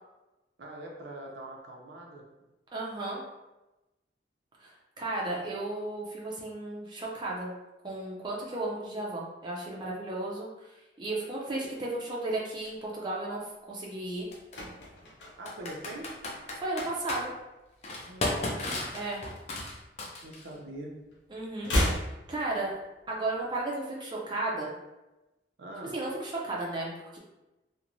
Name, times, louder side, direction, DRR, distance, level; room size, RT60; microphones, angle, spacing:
voice 1, 0.6-2.2 15.4-16.2 18.0-18.8 20.2-20.9 25.6-25.9, right 1 dB, 85° right, -1 dB, 0.6 m, -43 dB
voice 2, 2.7-3.2 4.6-7.5 7.8-10.7 11.0-14.3 16.6-17.3 18.9-19.2 21.3-21.7 22.3-22.8 23.1-24.7 25.9-27.2, right 2 dB, 25° right, -4 dB, 0.4 m, -34 dB
Computer keyboard, 12.6-12.7 14.3-14.6 15.5-17.2 17.8-20.5, left 2 dB, 40° left, 0.4 m, -34 dB
sound 1, 14.1-16.8 17.1-17.4 17.7-19.1 19.4-20.8 21.0-23.1 23.4-23.5, left 1 dB, 85° left, 0.7 m, -34 dB
2.9 x 2.1 x 2.5 m, 1.0 s
head